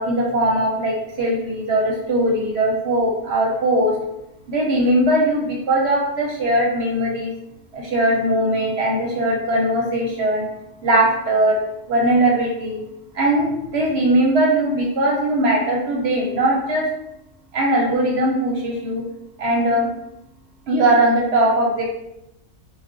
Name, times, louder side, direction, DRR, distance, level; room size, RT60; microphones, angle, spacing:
voice 1, 0.0-4.0 4.5-7.3 7.7-10.5 10.8-11.6 11.9-12.8 13.1-16.9 17.5-19.0 19.4-19.9 20.7-21.8, right 1 dB, 60° right, -2 dB, 0.8 m, -20 dB
2.3 x 2.2 x 3.6 m, 0.84 s
omnidirectional pair, 1.4 m